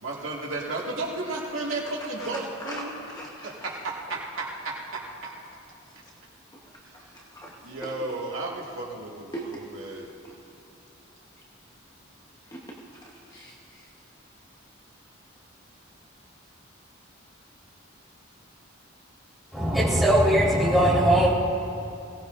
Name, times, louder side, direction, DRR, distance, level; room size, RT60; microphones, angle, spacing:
voice 1, 0.0-3.0 3.4-5.3 7.6-10.1, right 2 dB, 80° right, -3 dB, 2.0 m, -33 dB
voice 2, 2.2-3.7 6.9-7.5 7.8-7.9 9.3-9.6 10.2-10.3 12.5-12.8 13.0-13.8, right 1 dB, 20° left, -3 dB, 1.1 m, -40 dB
voice 3, 19.5-21.3, right 1 dB, ahead, -10 dB, 4.1 m, -20 dB
21.0 x 17.5 x 2.6 m, 2.7 s
head